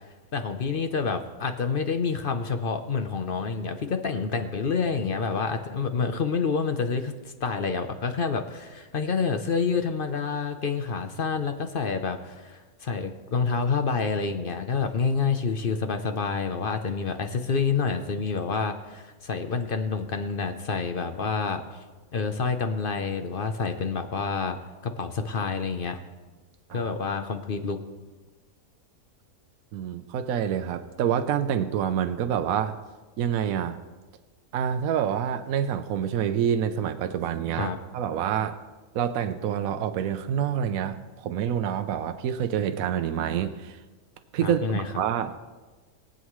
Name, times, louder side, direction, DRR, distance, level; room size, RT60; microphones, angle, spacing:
voice 1, 0.3-7.2 7.4-21.6 22.1-26.0 26.7-27.8 37.6-37.8 44.4-44.9, left 5 dB, 50° left, 7 dB, 0.7 m, -28 dB
voice 2, 29.7-32.8 33.2-33.8 34.5-38.6 38.9-43.8 44.3-45.4, right 9 dB, 70° right, 8 dB, 1.0 m, -27 dB
22.5 x 8.3 x 3.1 m, 1.3 s
omnidirectional pair, 1.6 m